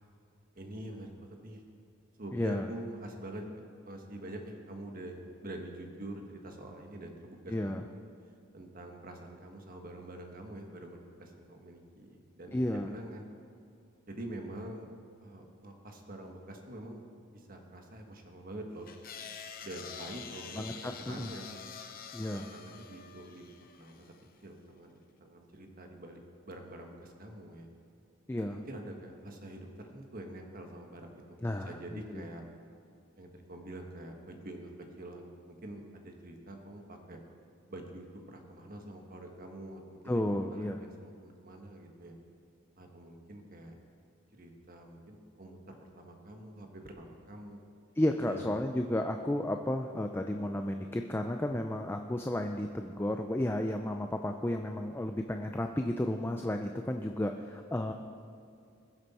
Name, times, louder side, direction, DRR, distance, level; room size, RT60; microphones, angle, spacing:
voice 1, 0.5-1.6 2.2-3.5 3.8-7.8 8.5-13.3 14.1-14.9 15.2-17.0 17.3-18.9 19.6-21.6 22.2-23.5 23.7-24.1 24.4-27.7 28.5-31.2 31.6-32.4 33.2-34.7 35.0-37.2 37.7-40.2 40.5-42.1 42.8-43.7 44.3-47.6 48.2-48.5, right 1 dB, 45° right, 3 dB, 1.4 m, -46 dB
voice 2, 2.3-2.7 7.5-7.8 12.5-12.9 20.6-21.3 22.1-22.5 28.3-28.6 31.4-32.2 40.1-40.8 48.0-57.9, left 1 dB, 10° left, 5 dB, 0.4 m, -33 dB
sound 1, 18.9-24.2, left 7 dB, 45° left, 0.8 m, -47 dB
21.0 x 7.9 x 4.2 m, 2.4 s
head